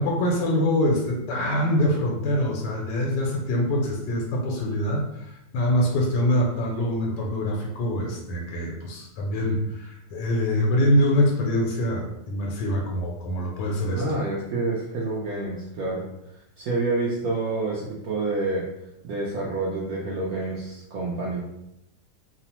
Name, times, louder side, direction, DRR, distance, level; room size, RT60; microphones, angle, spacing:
voice 1, 0.0-14.0, left 1 dB, 85° left, 0 dB, 1.2 m, -24 dB
voice 2, 13.9-16.0 16.6-18.6 19.0-21.4, right 2 dB, 70° right, -4 dB, 0.9 m, -28 dB
3.0 x 2.0 x 2.8 m, 0.85 s
omnidirectional pair, 1.8 m